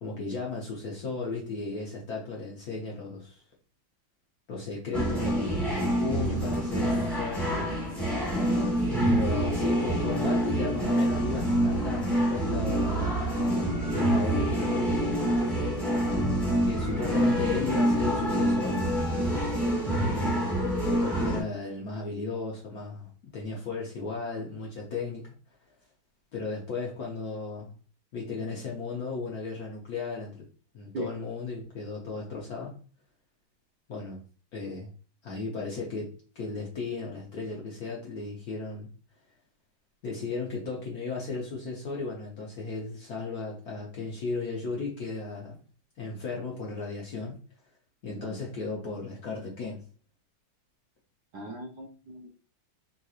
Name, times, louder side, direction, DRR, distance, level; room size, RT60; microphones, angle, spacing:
voice 1, 0.0-3.4 4.5-7.7 9.0-15.1 16.6-18.8 20.0-20.6 21.0-25.3 26.3-27.7 28.1-30.4 30.7-32.8 33.9-34.2 34.5-34.9 35.2-36.1 36.3-38.9 40.0-45.6 46.0-47.4 48.0-49.8, left 4 dB, 60° left, -2 dB, 1.0 m, -35 dB
sound 1, 4.9-21.4, right 1 dB, ahead, 0.6 m, -26 dB
voice 2, 51.3-52.3, right 1 dB, 70° right, 0 dB, 1.0 m, -39 dB
3.7 x 2.9 x 2.4 m, 0.39 s
omnidirectional pair, 2.4 m